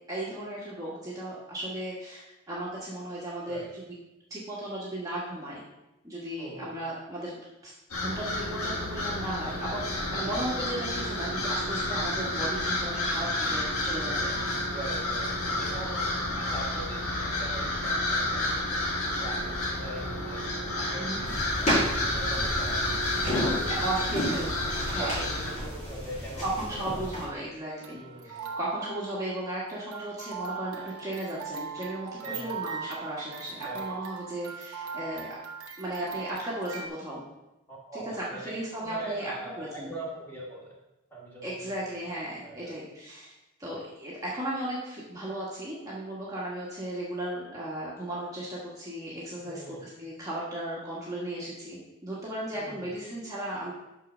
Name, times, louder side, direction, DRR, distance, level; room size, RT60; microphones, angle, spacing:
voice 1, 0.1-3.8 4.3-5.6 6.0-7.4 7.6-14.5 21.0-21.3 23.7-25.1 26.4-35.3 35.8-37.2 37.9-39.9 41.4-53.7, right 1 dB, 15° right, -7 dB, 1.5 m, -36 dB
voice 2, 6.4-6.7 14.7-15.3 15.6-20.4 20.8-23.5 24.1-24.5 25.0-27.1 27.9-28.6 32.2-32.6 33.6-33.8 37.7-38.5 38.8-40.8 41.1-41.9 42.4-42.8 43.6-43.8 49.4-49.9 52.5-52.9, right 2 dB, 10° left, -5 dB, 2.1 m, -42 dB
sound 1, 7.9-25.6, left 1 dB, 80° left, 1.7 m, -30 dB
sound 2, 21.2-27.3, equal, 30° left, 2.2 m, -32 dB
sound 3, 27.7-36.9, right 6 dB, 90° right, 1.0 m, -40 dB
6.1 x 5.7 x 6.1 m, 0.96 s
head